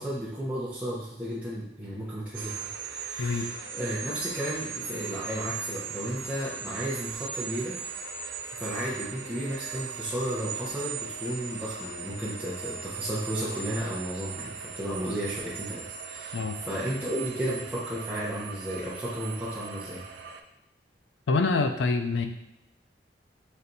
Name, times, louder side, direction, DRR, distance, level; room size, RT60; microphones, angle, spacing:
voice 1, 0.0-2.6 2.8-7.8 8.6-20.0, right 1 dB, 10° right, -10 dB, 0.7 m, -33 dB
sound 1, 2.3-20.4, right 6 dB, 75° right, 0.4 m, -39 dB
voice 2, 21.3-22.3, left 3 dB, 85° left, 7 dB, 0.4 m, -25 dB
4.3 x 3.3 x 2.6 m, 0.87 s
head